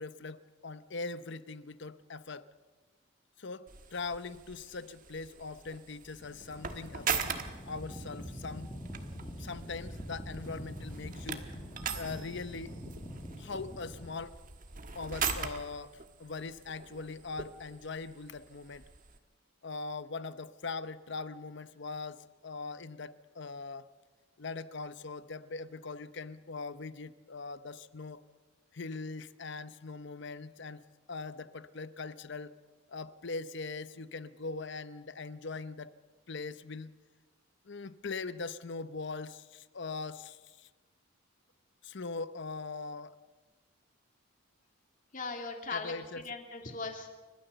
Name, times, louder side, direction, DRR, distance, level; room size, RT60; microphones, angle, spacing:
voice 1, 0.0-2.4 3.4-7.3 7.7-8.7 9.4-11.5 11.9-12.7 13.4-14.4 14.9-18.8 19.6-23.9 24.4-28.2 28.7-30.8 31.1-32.5 32.9-35.9 36.3-36.9 37.6-40.7 41.8-43.2 45.7-46.2, left 4 dB, 60° left, 14 dB, 0.8 m, -41 dB
sound 1, 3.7-19.2, right 6 dB, 40° right, 1.4 m, -41 dB
sound 2, 6.1-14.1, equal, 20° left, 5.4 m, -45 dB
voice 2, 45.1-45.9 46.2-47.1, left 4 dB, 40° left, 4 dB, 2.5 m, -38 dB
29.5 x 13.0 x 6.8 m, 1.3 s
head